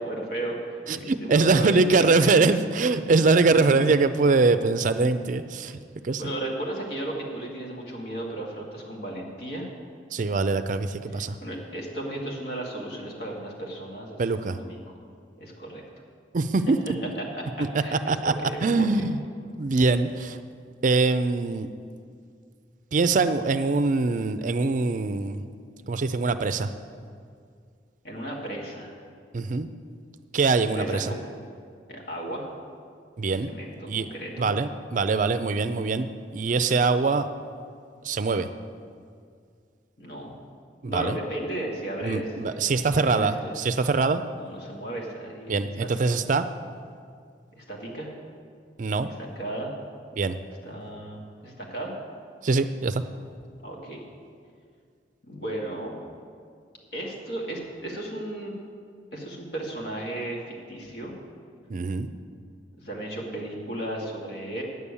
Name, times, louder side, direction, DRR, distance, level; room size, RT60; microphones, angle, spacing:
voice 1, 0.0-2.3 6.2-9.7 11.1-14.8 15.4-15.8 17.2-19.1 28.0-28.9 30.7-31.2 31.9-32.5 33.4-34.5 40.0-40.3 40.9-43.6 44.3-45.9 47.6-48.1 49.0-49.7 50.6-51.9 53.6-54.0 55.2-56.0 56.9-58.5 59.1-61.1 62.8-64.6, right 1 dB, 65° left, -1 dB, 2.1 m, -35 dB
voice 2, 0.9-5.8 6.0-6.2 10.1-11.4 14.2-14.6 16.3-16.8 17.6-17.7 18.1-18.3 18.6-19.2 19.6-20.4 20.8-21.7 22.9-25.5 25.9-26.7 29.3-29.7 30.3-31.1 33.2-33.5 33.9-34.1 34.4-36.1 36.3-37.3 38.0-38.5 40.8-41.2 42.0-44.2 45.5-46.5 48.8-49.1 50.2-50.4 52.4-53.0 61.7-62.1, right 3 dB, 45° right, 11 dB, 0.4 m, -23 dB
9.4 x 7.1 x 8.3 m, 2.2 s
head